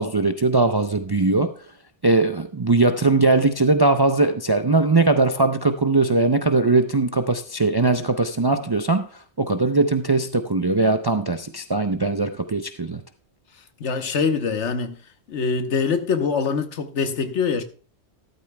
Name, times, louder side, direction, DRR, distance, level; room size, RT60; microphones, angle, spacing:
voice 1, 0.0-1.5 2.0-13.0, right 3 dB, 40° right, 0.3 m, -20 dB
voice 2, 13.8-15.0 15.3-17.6, left 5 dB, 90° left, 1.3 m, -24 dB
13.5 x 12.0 x 2.2 m
omnidirectional pair, 1.2 m